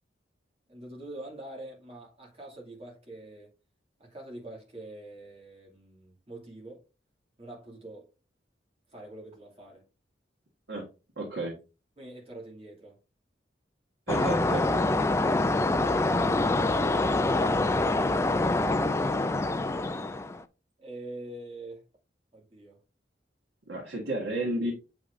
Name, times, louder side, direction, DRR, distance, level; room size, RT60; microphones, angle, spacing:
voice 1, 0.7-3.5 4.0-6.8 7.4-8.1 8.9-9.9 12.0-13.0 15.7-17.4 20.8-21.8 22.3-22.8, right 2 dB, 35° right, 2.4 m, -44 dB
voice 2, 11.2-11.5 14.1-14.6 23.7-24.7, right 1 dB, 85° right, 1.7 m, -31 dB
sound 1, 14.1-20.4, left 2 dB, 15° left, 0.3 m, -25 dB
7.5 x 5.0 x 2.6 m
head